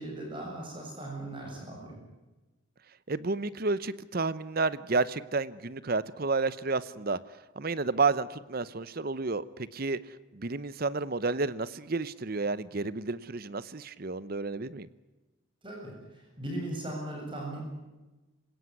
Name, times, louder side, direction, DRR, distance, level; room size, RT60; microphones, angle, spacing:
voice 1, 0.0-2.0 15.6-17.6, right 1 dB, 25° right, -1 dB, 7.6 m, -38 dB
voice 2, 3.1-7.2 7.6-10.0 10.3-14.9, right 3 dB, 45° right, 17 dB, 0.8 m, -31 dB
27.0 x 17.5 x 9.6 m, 1.1 s
head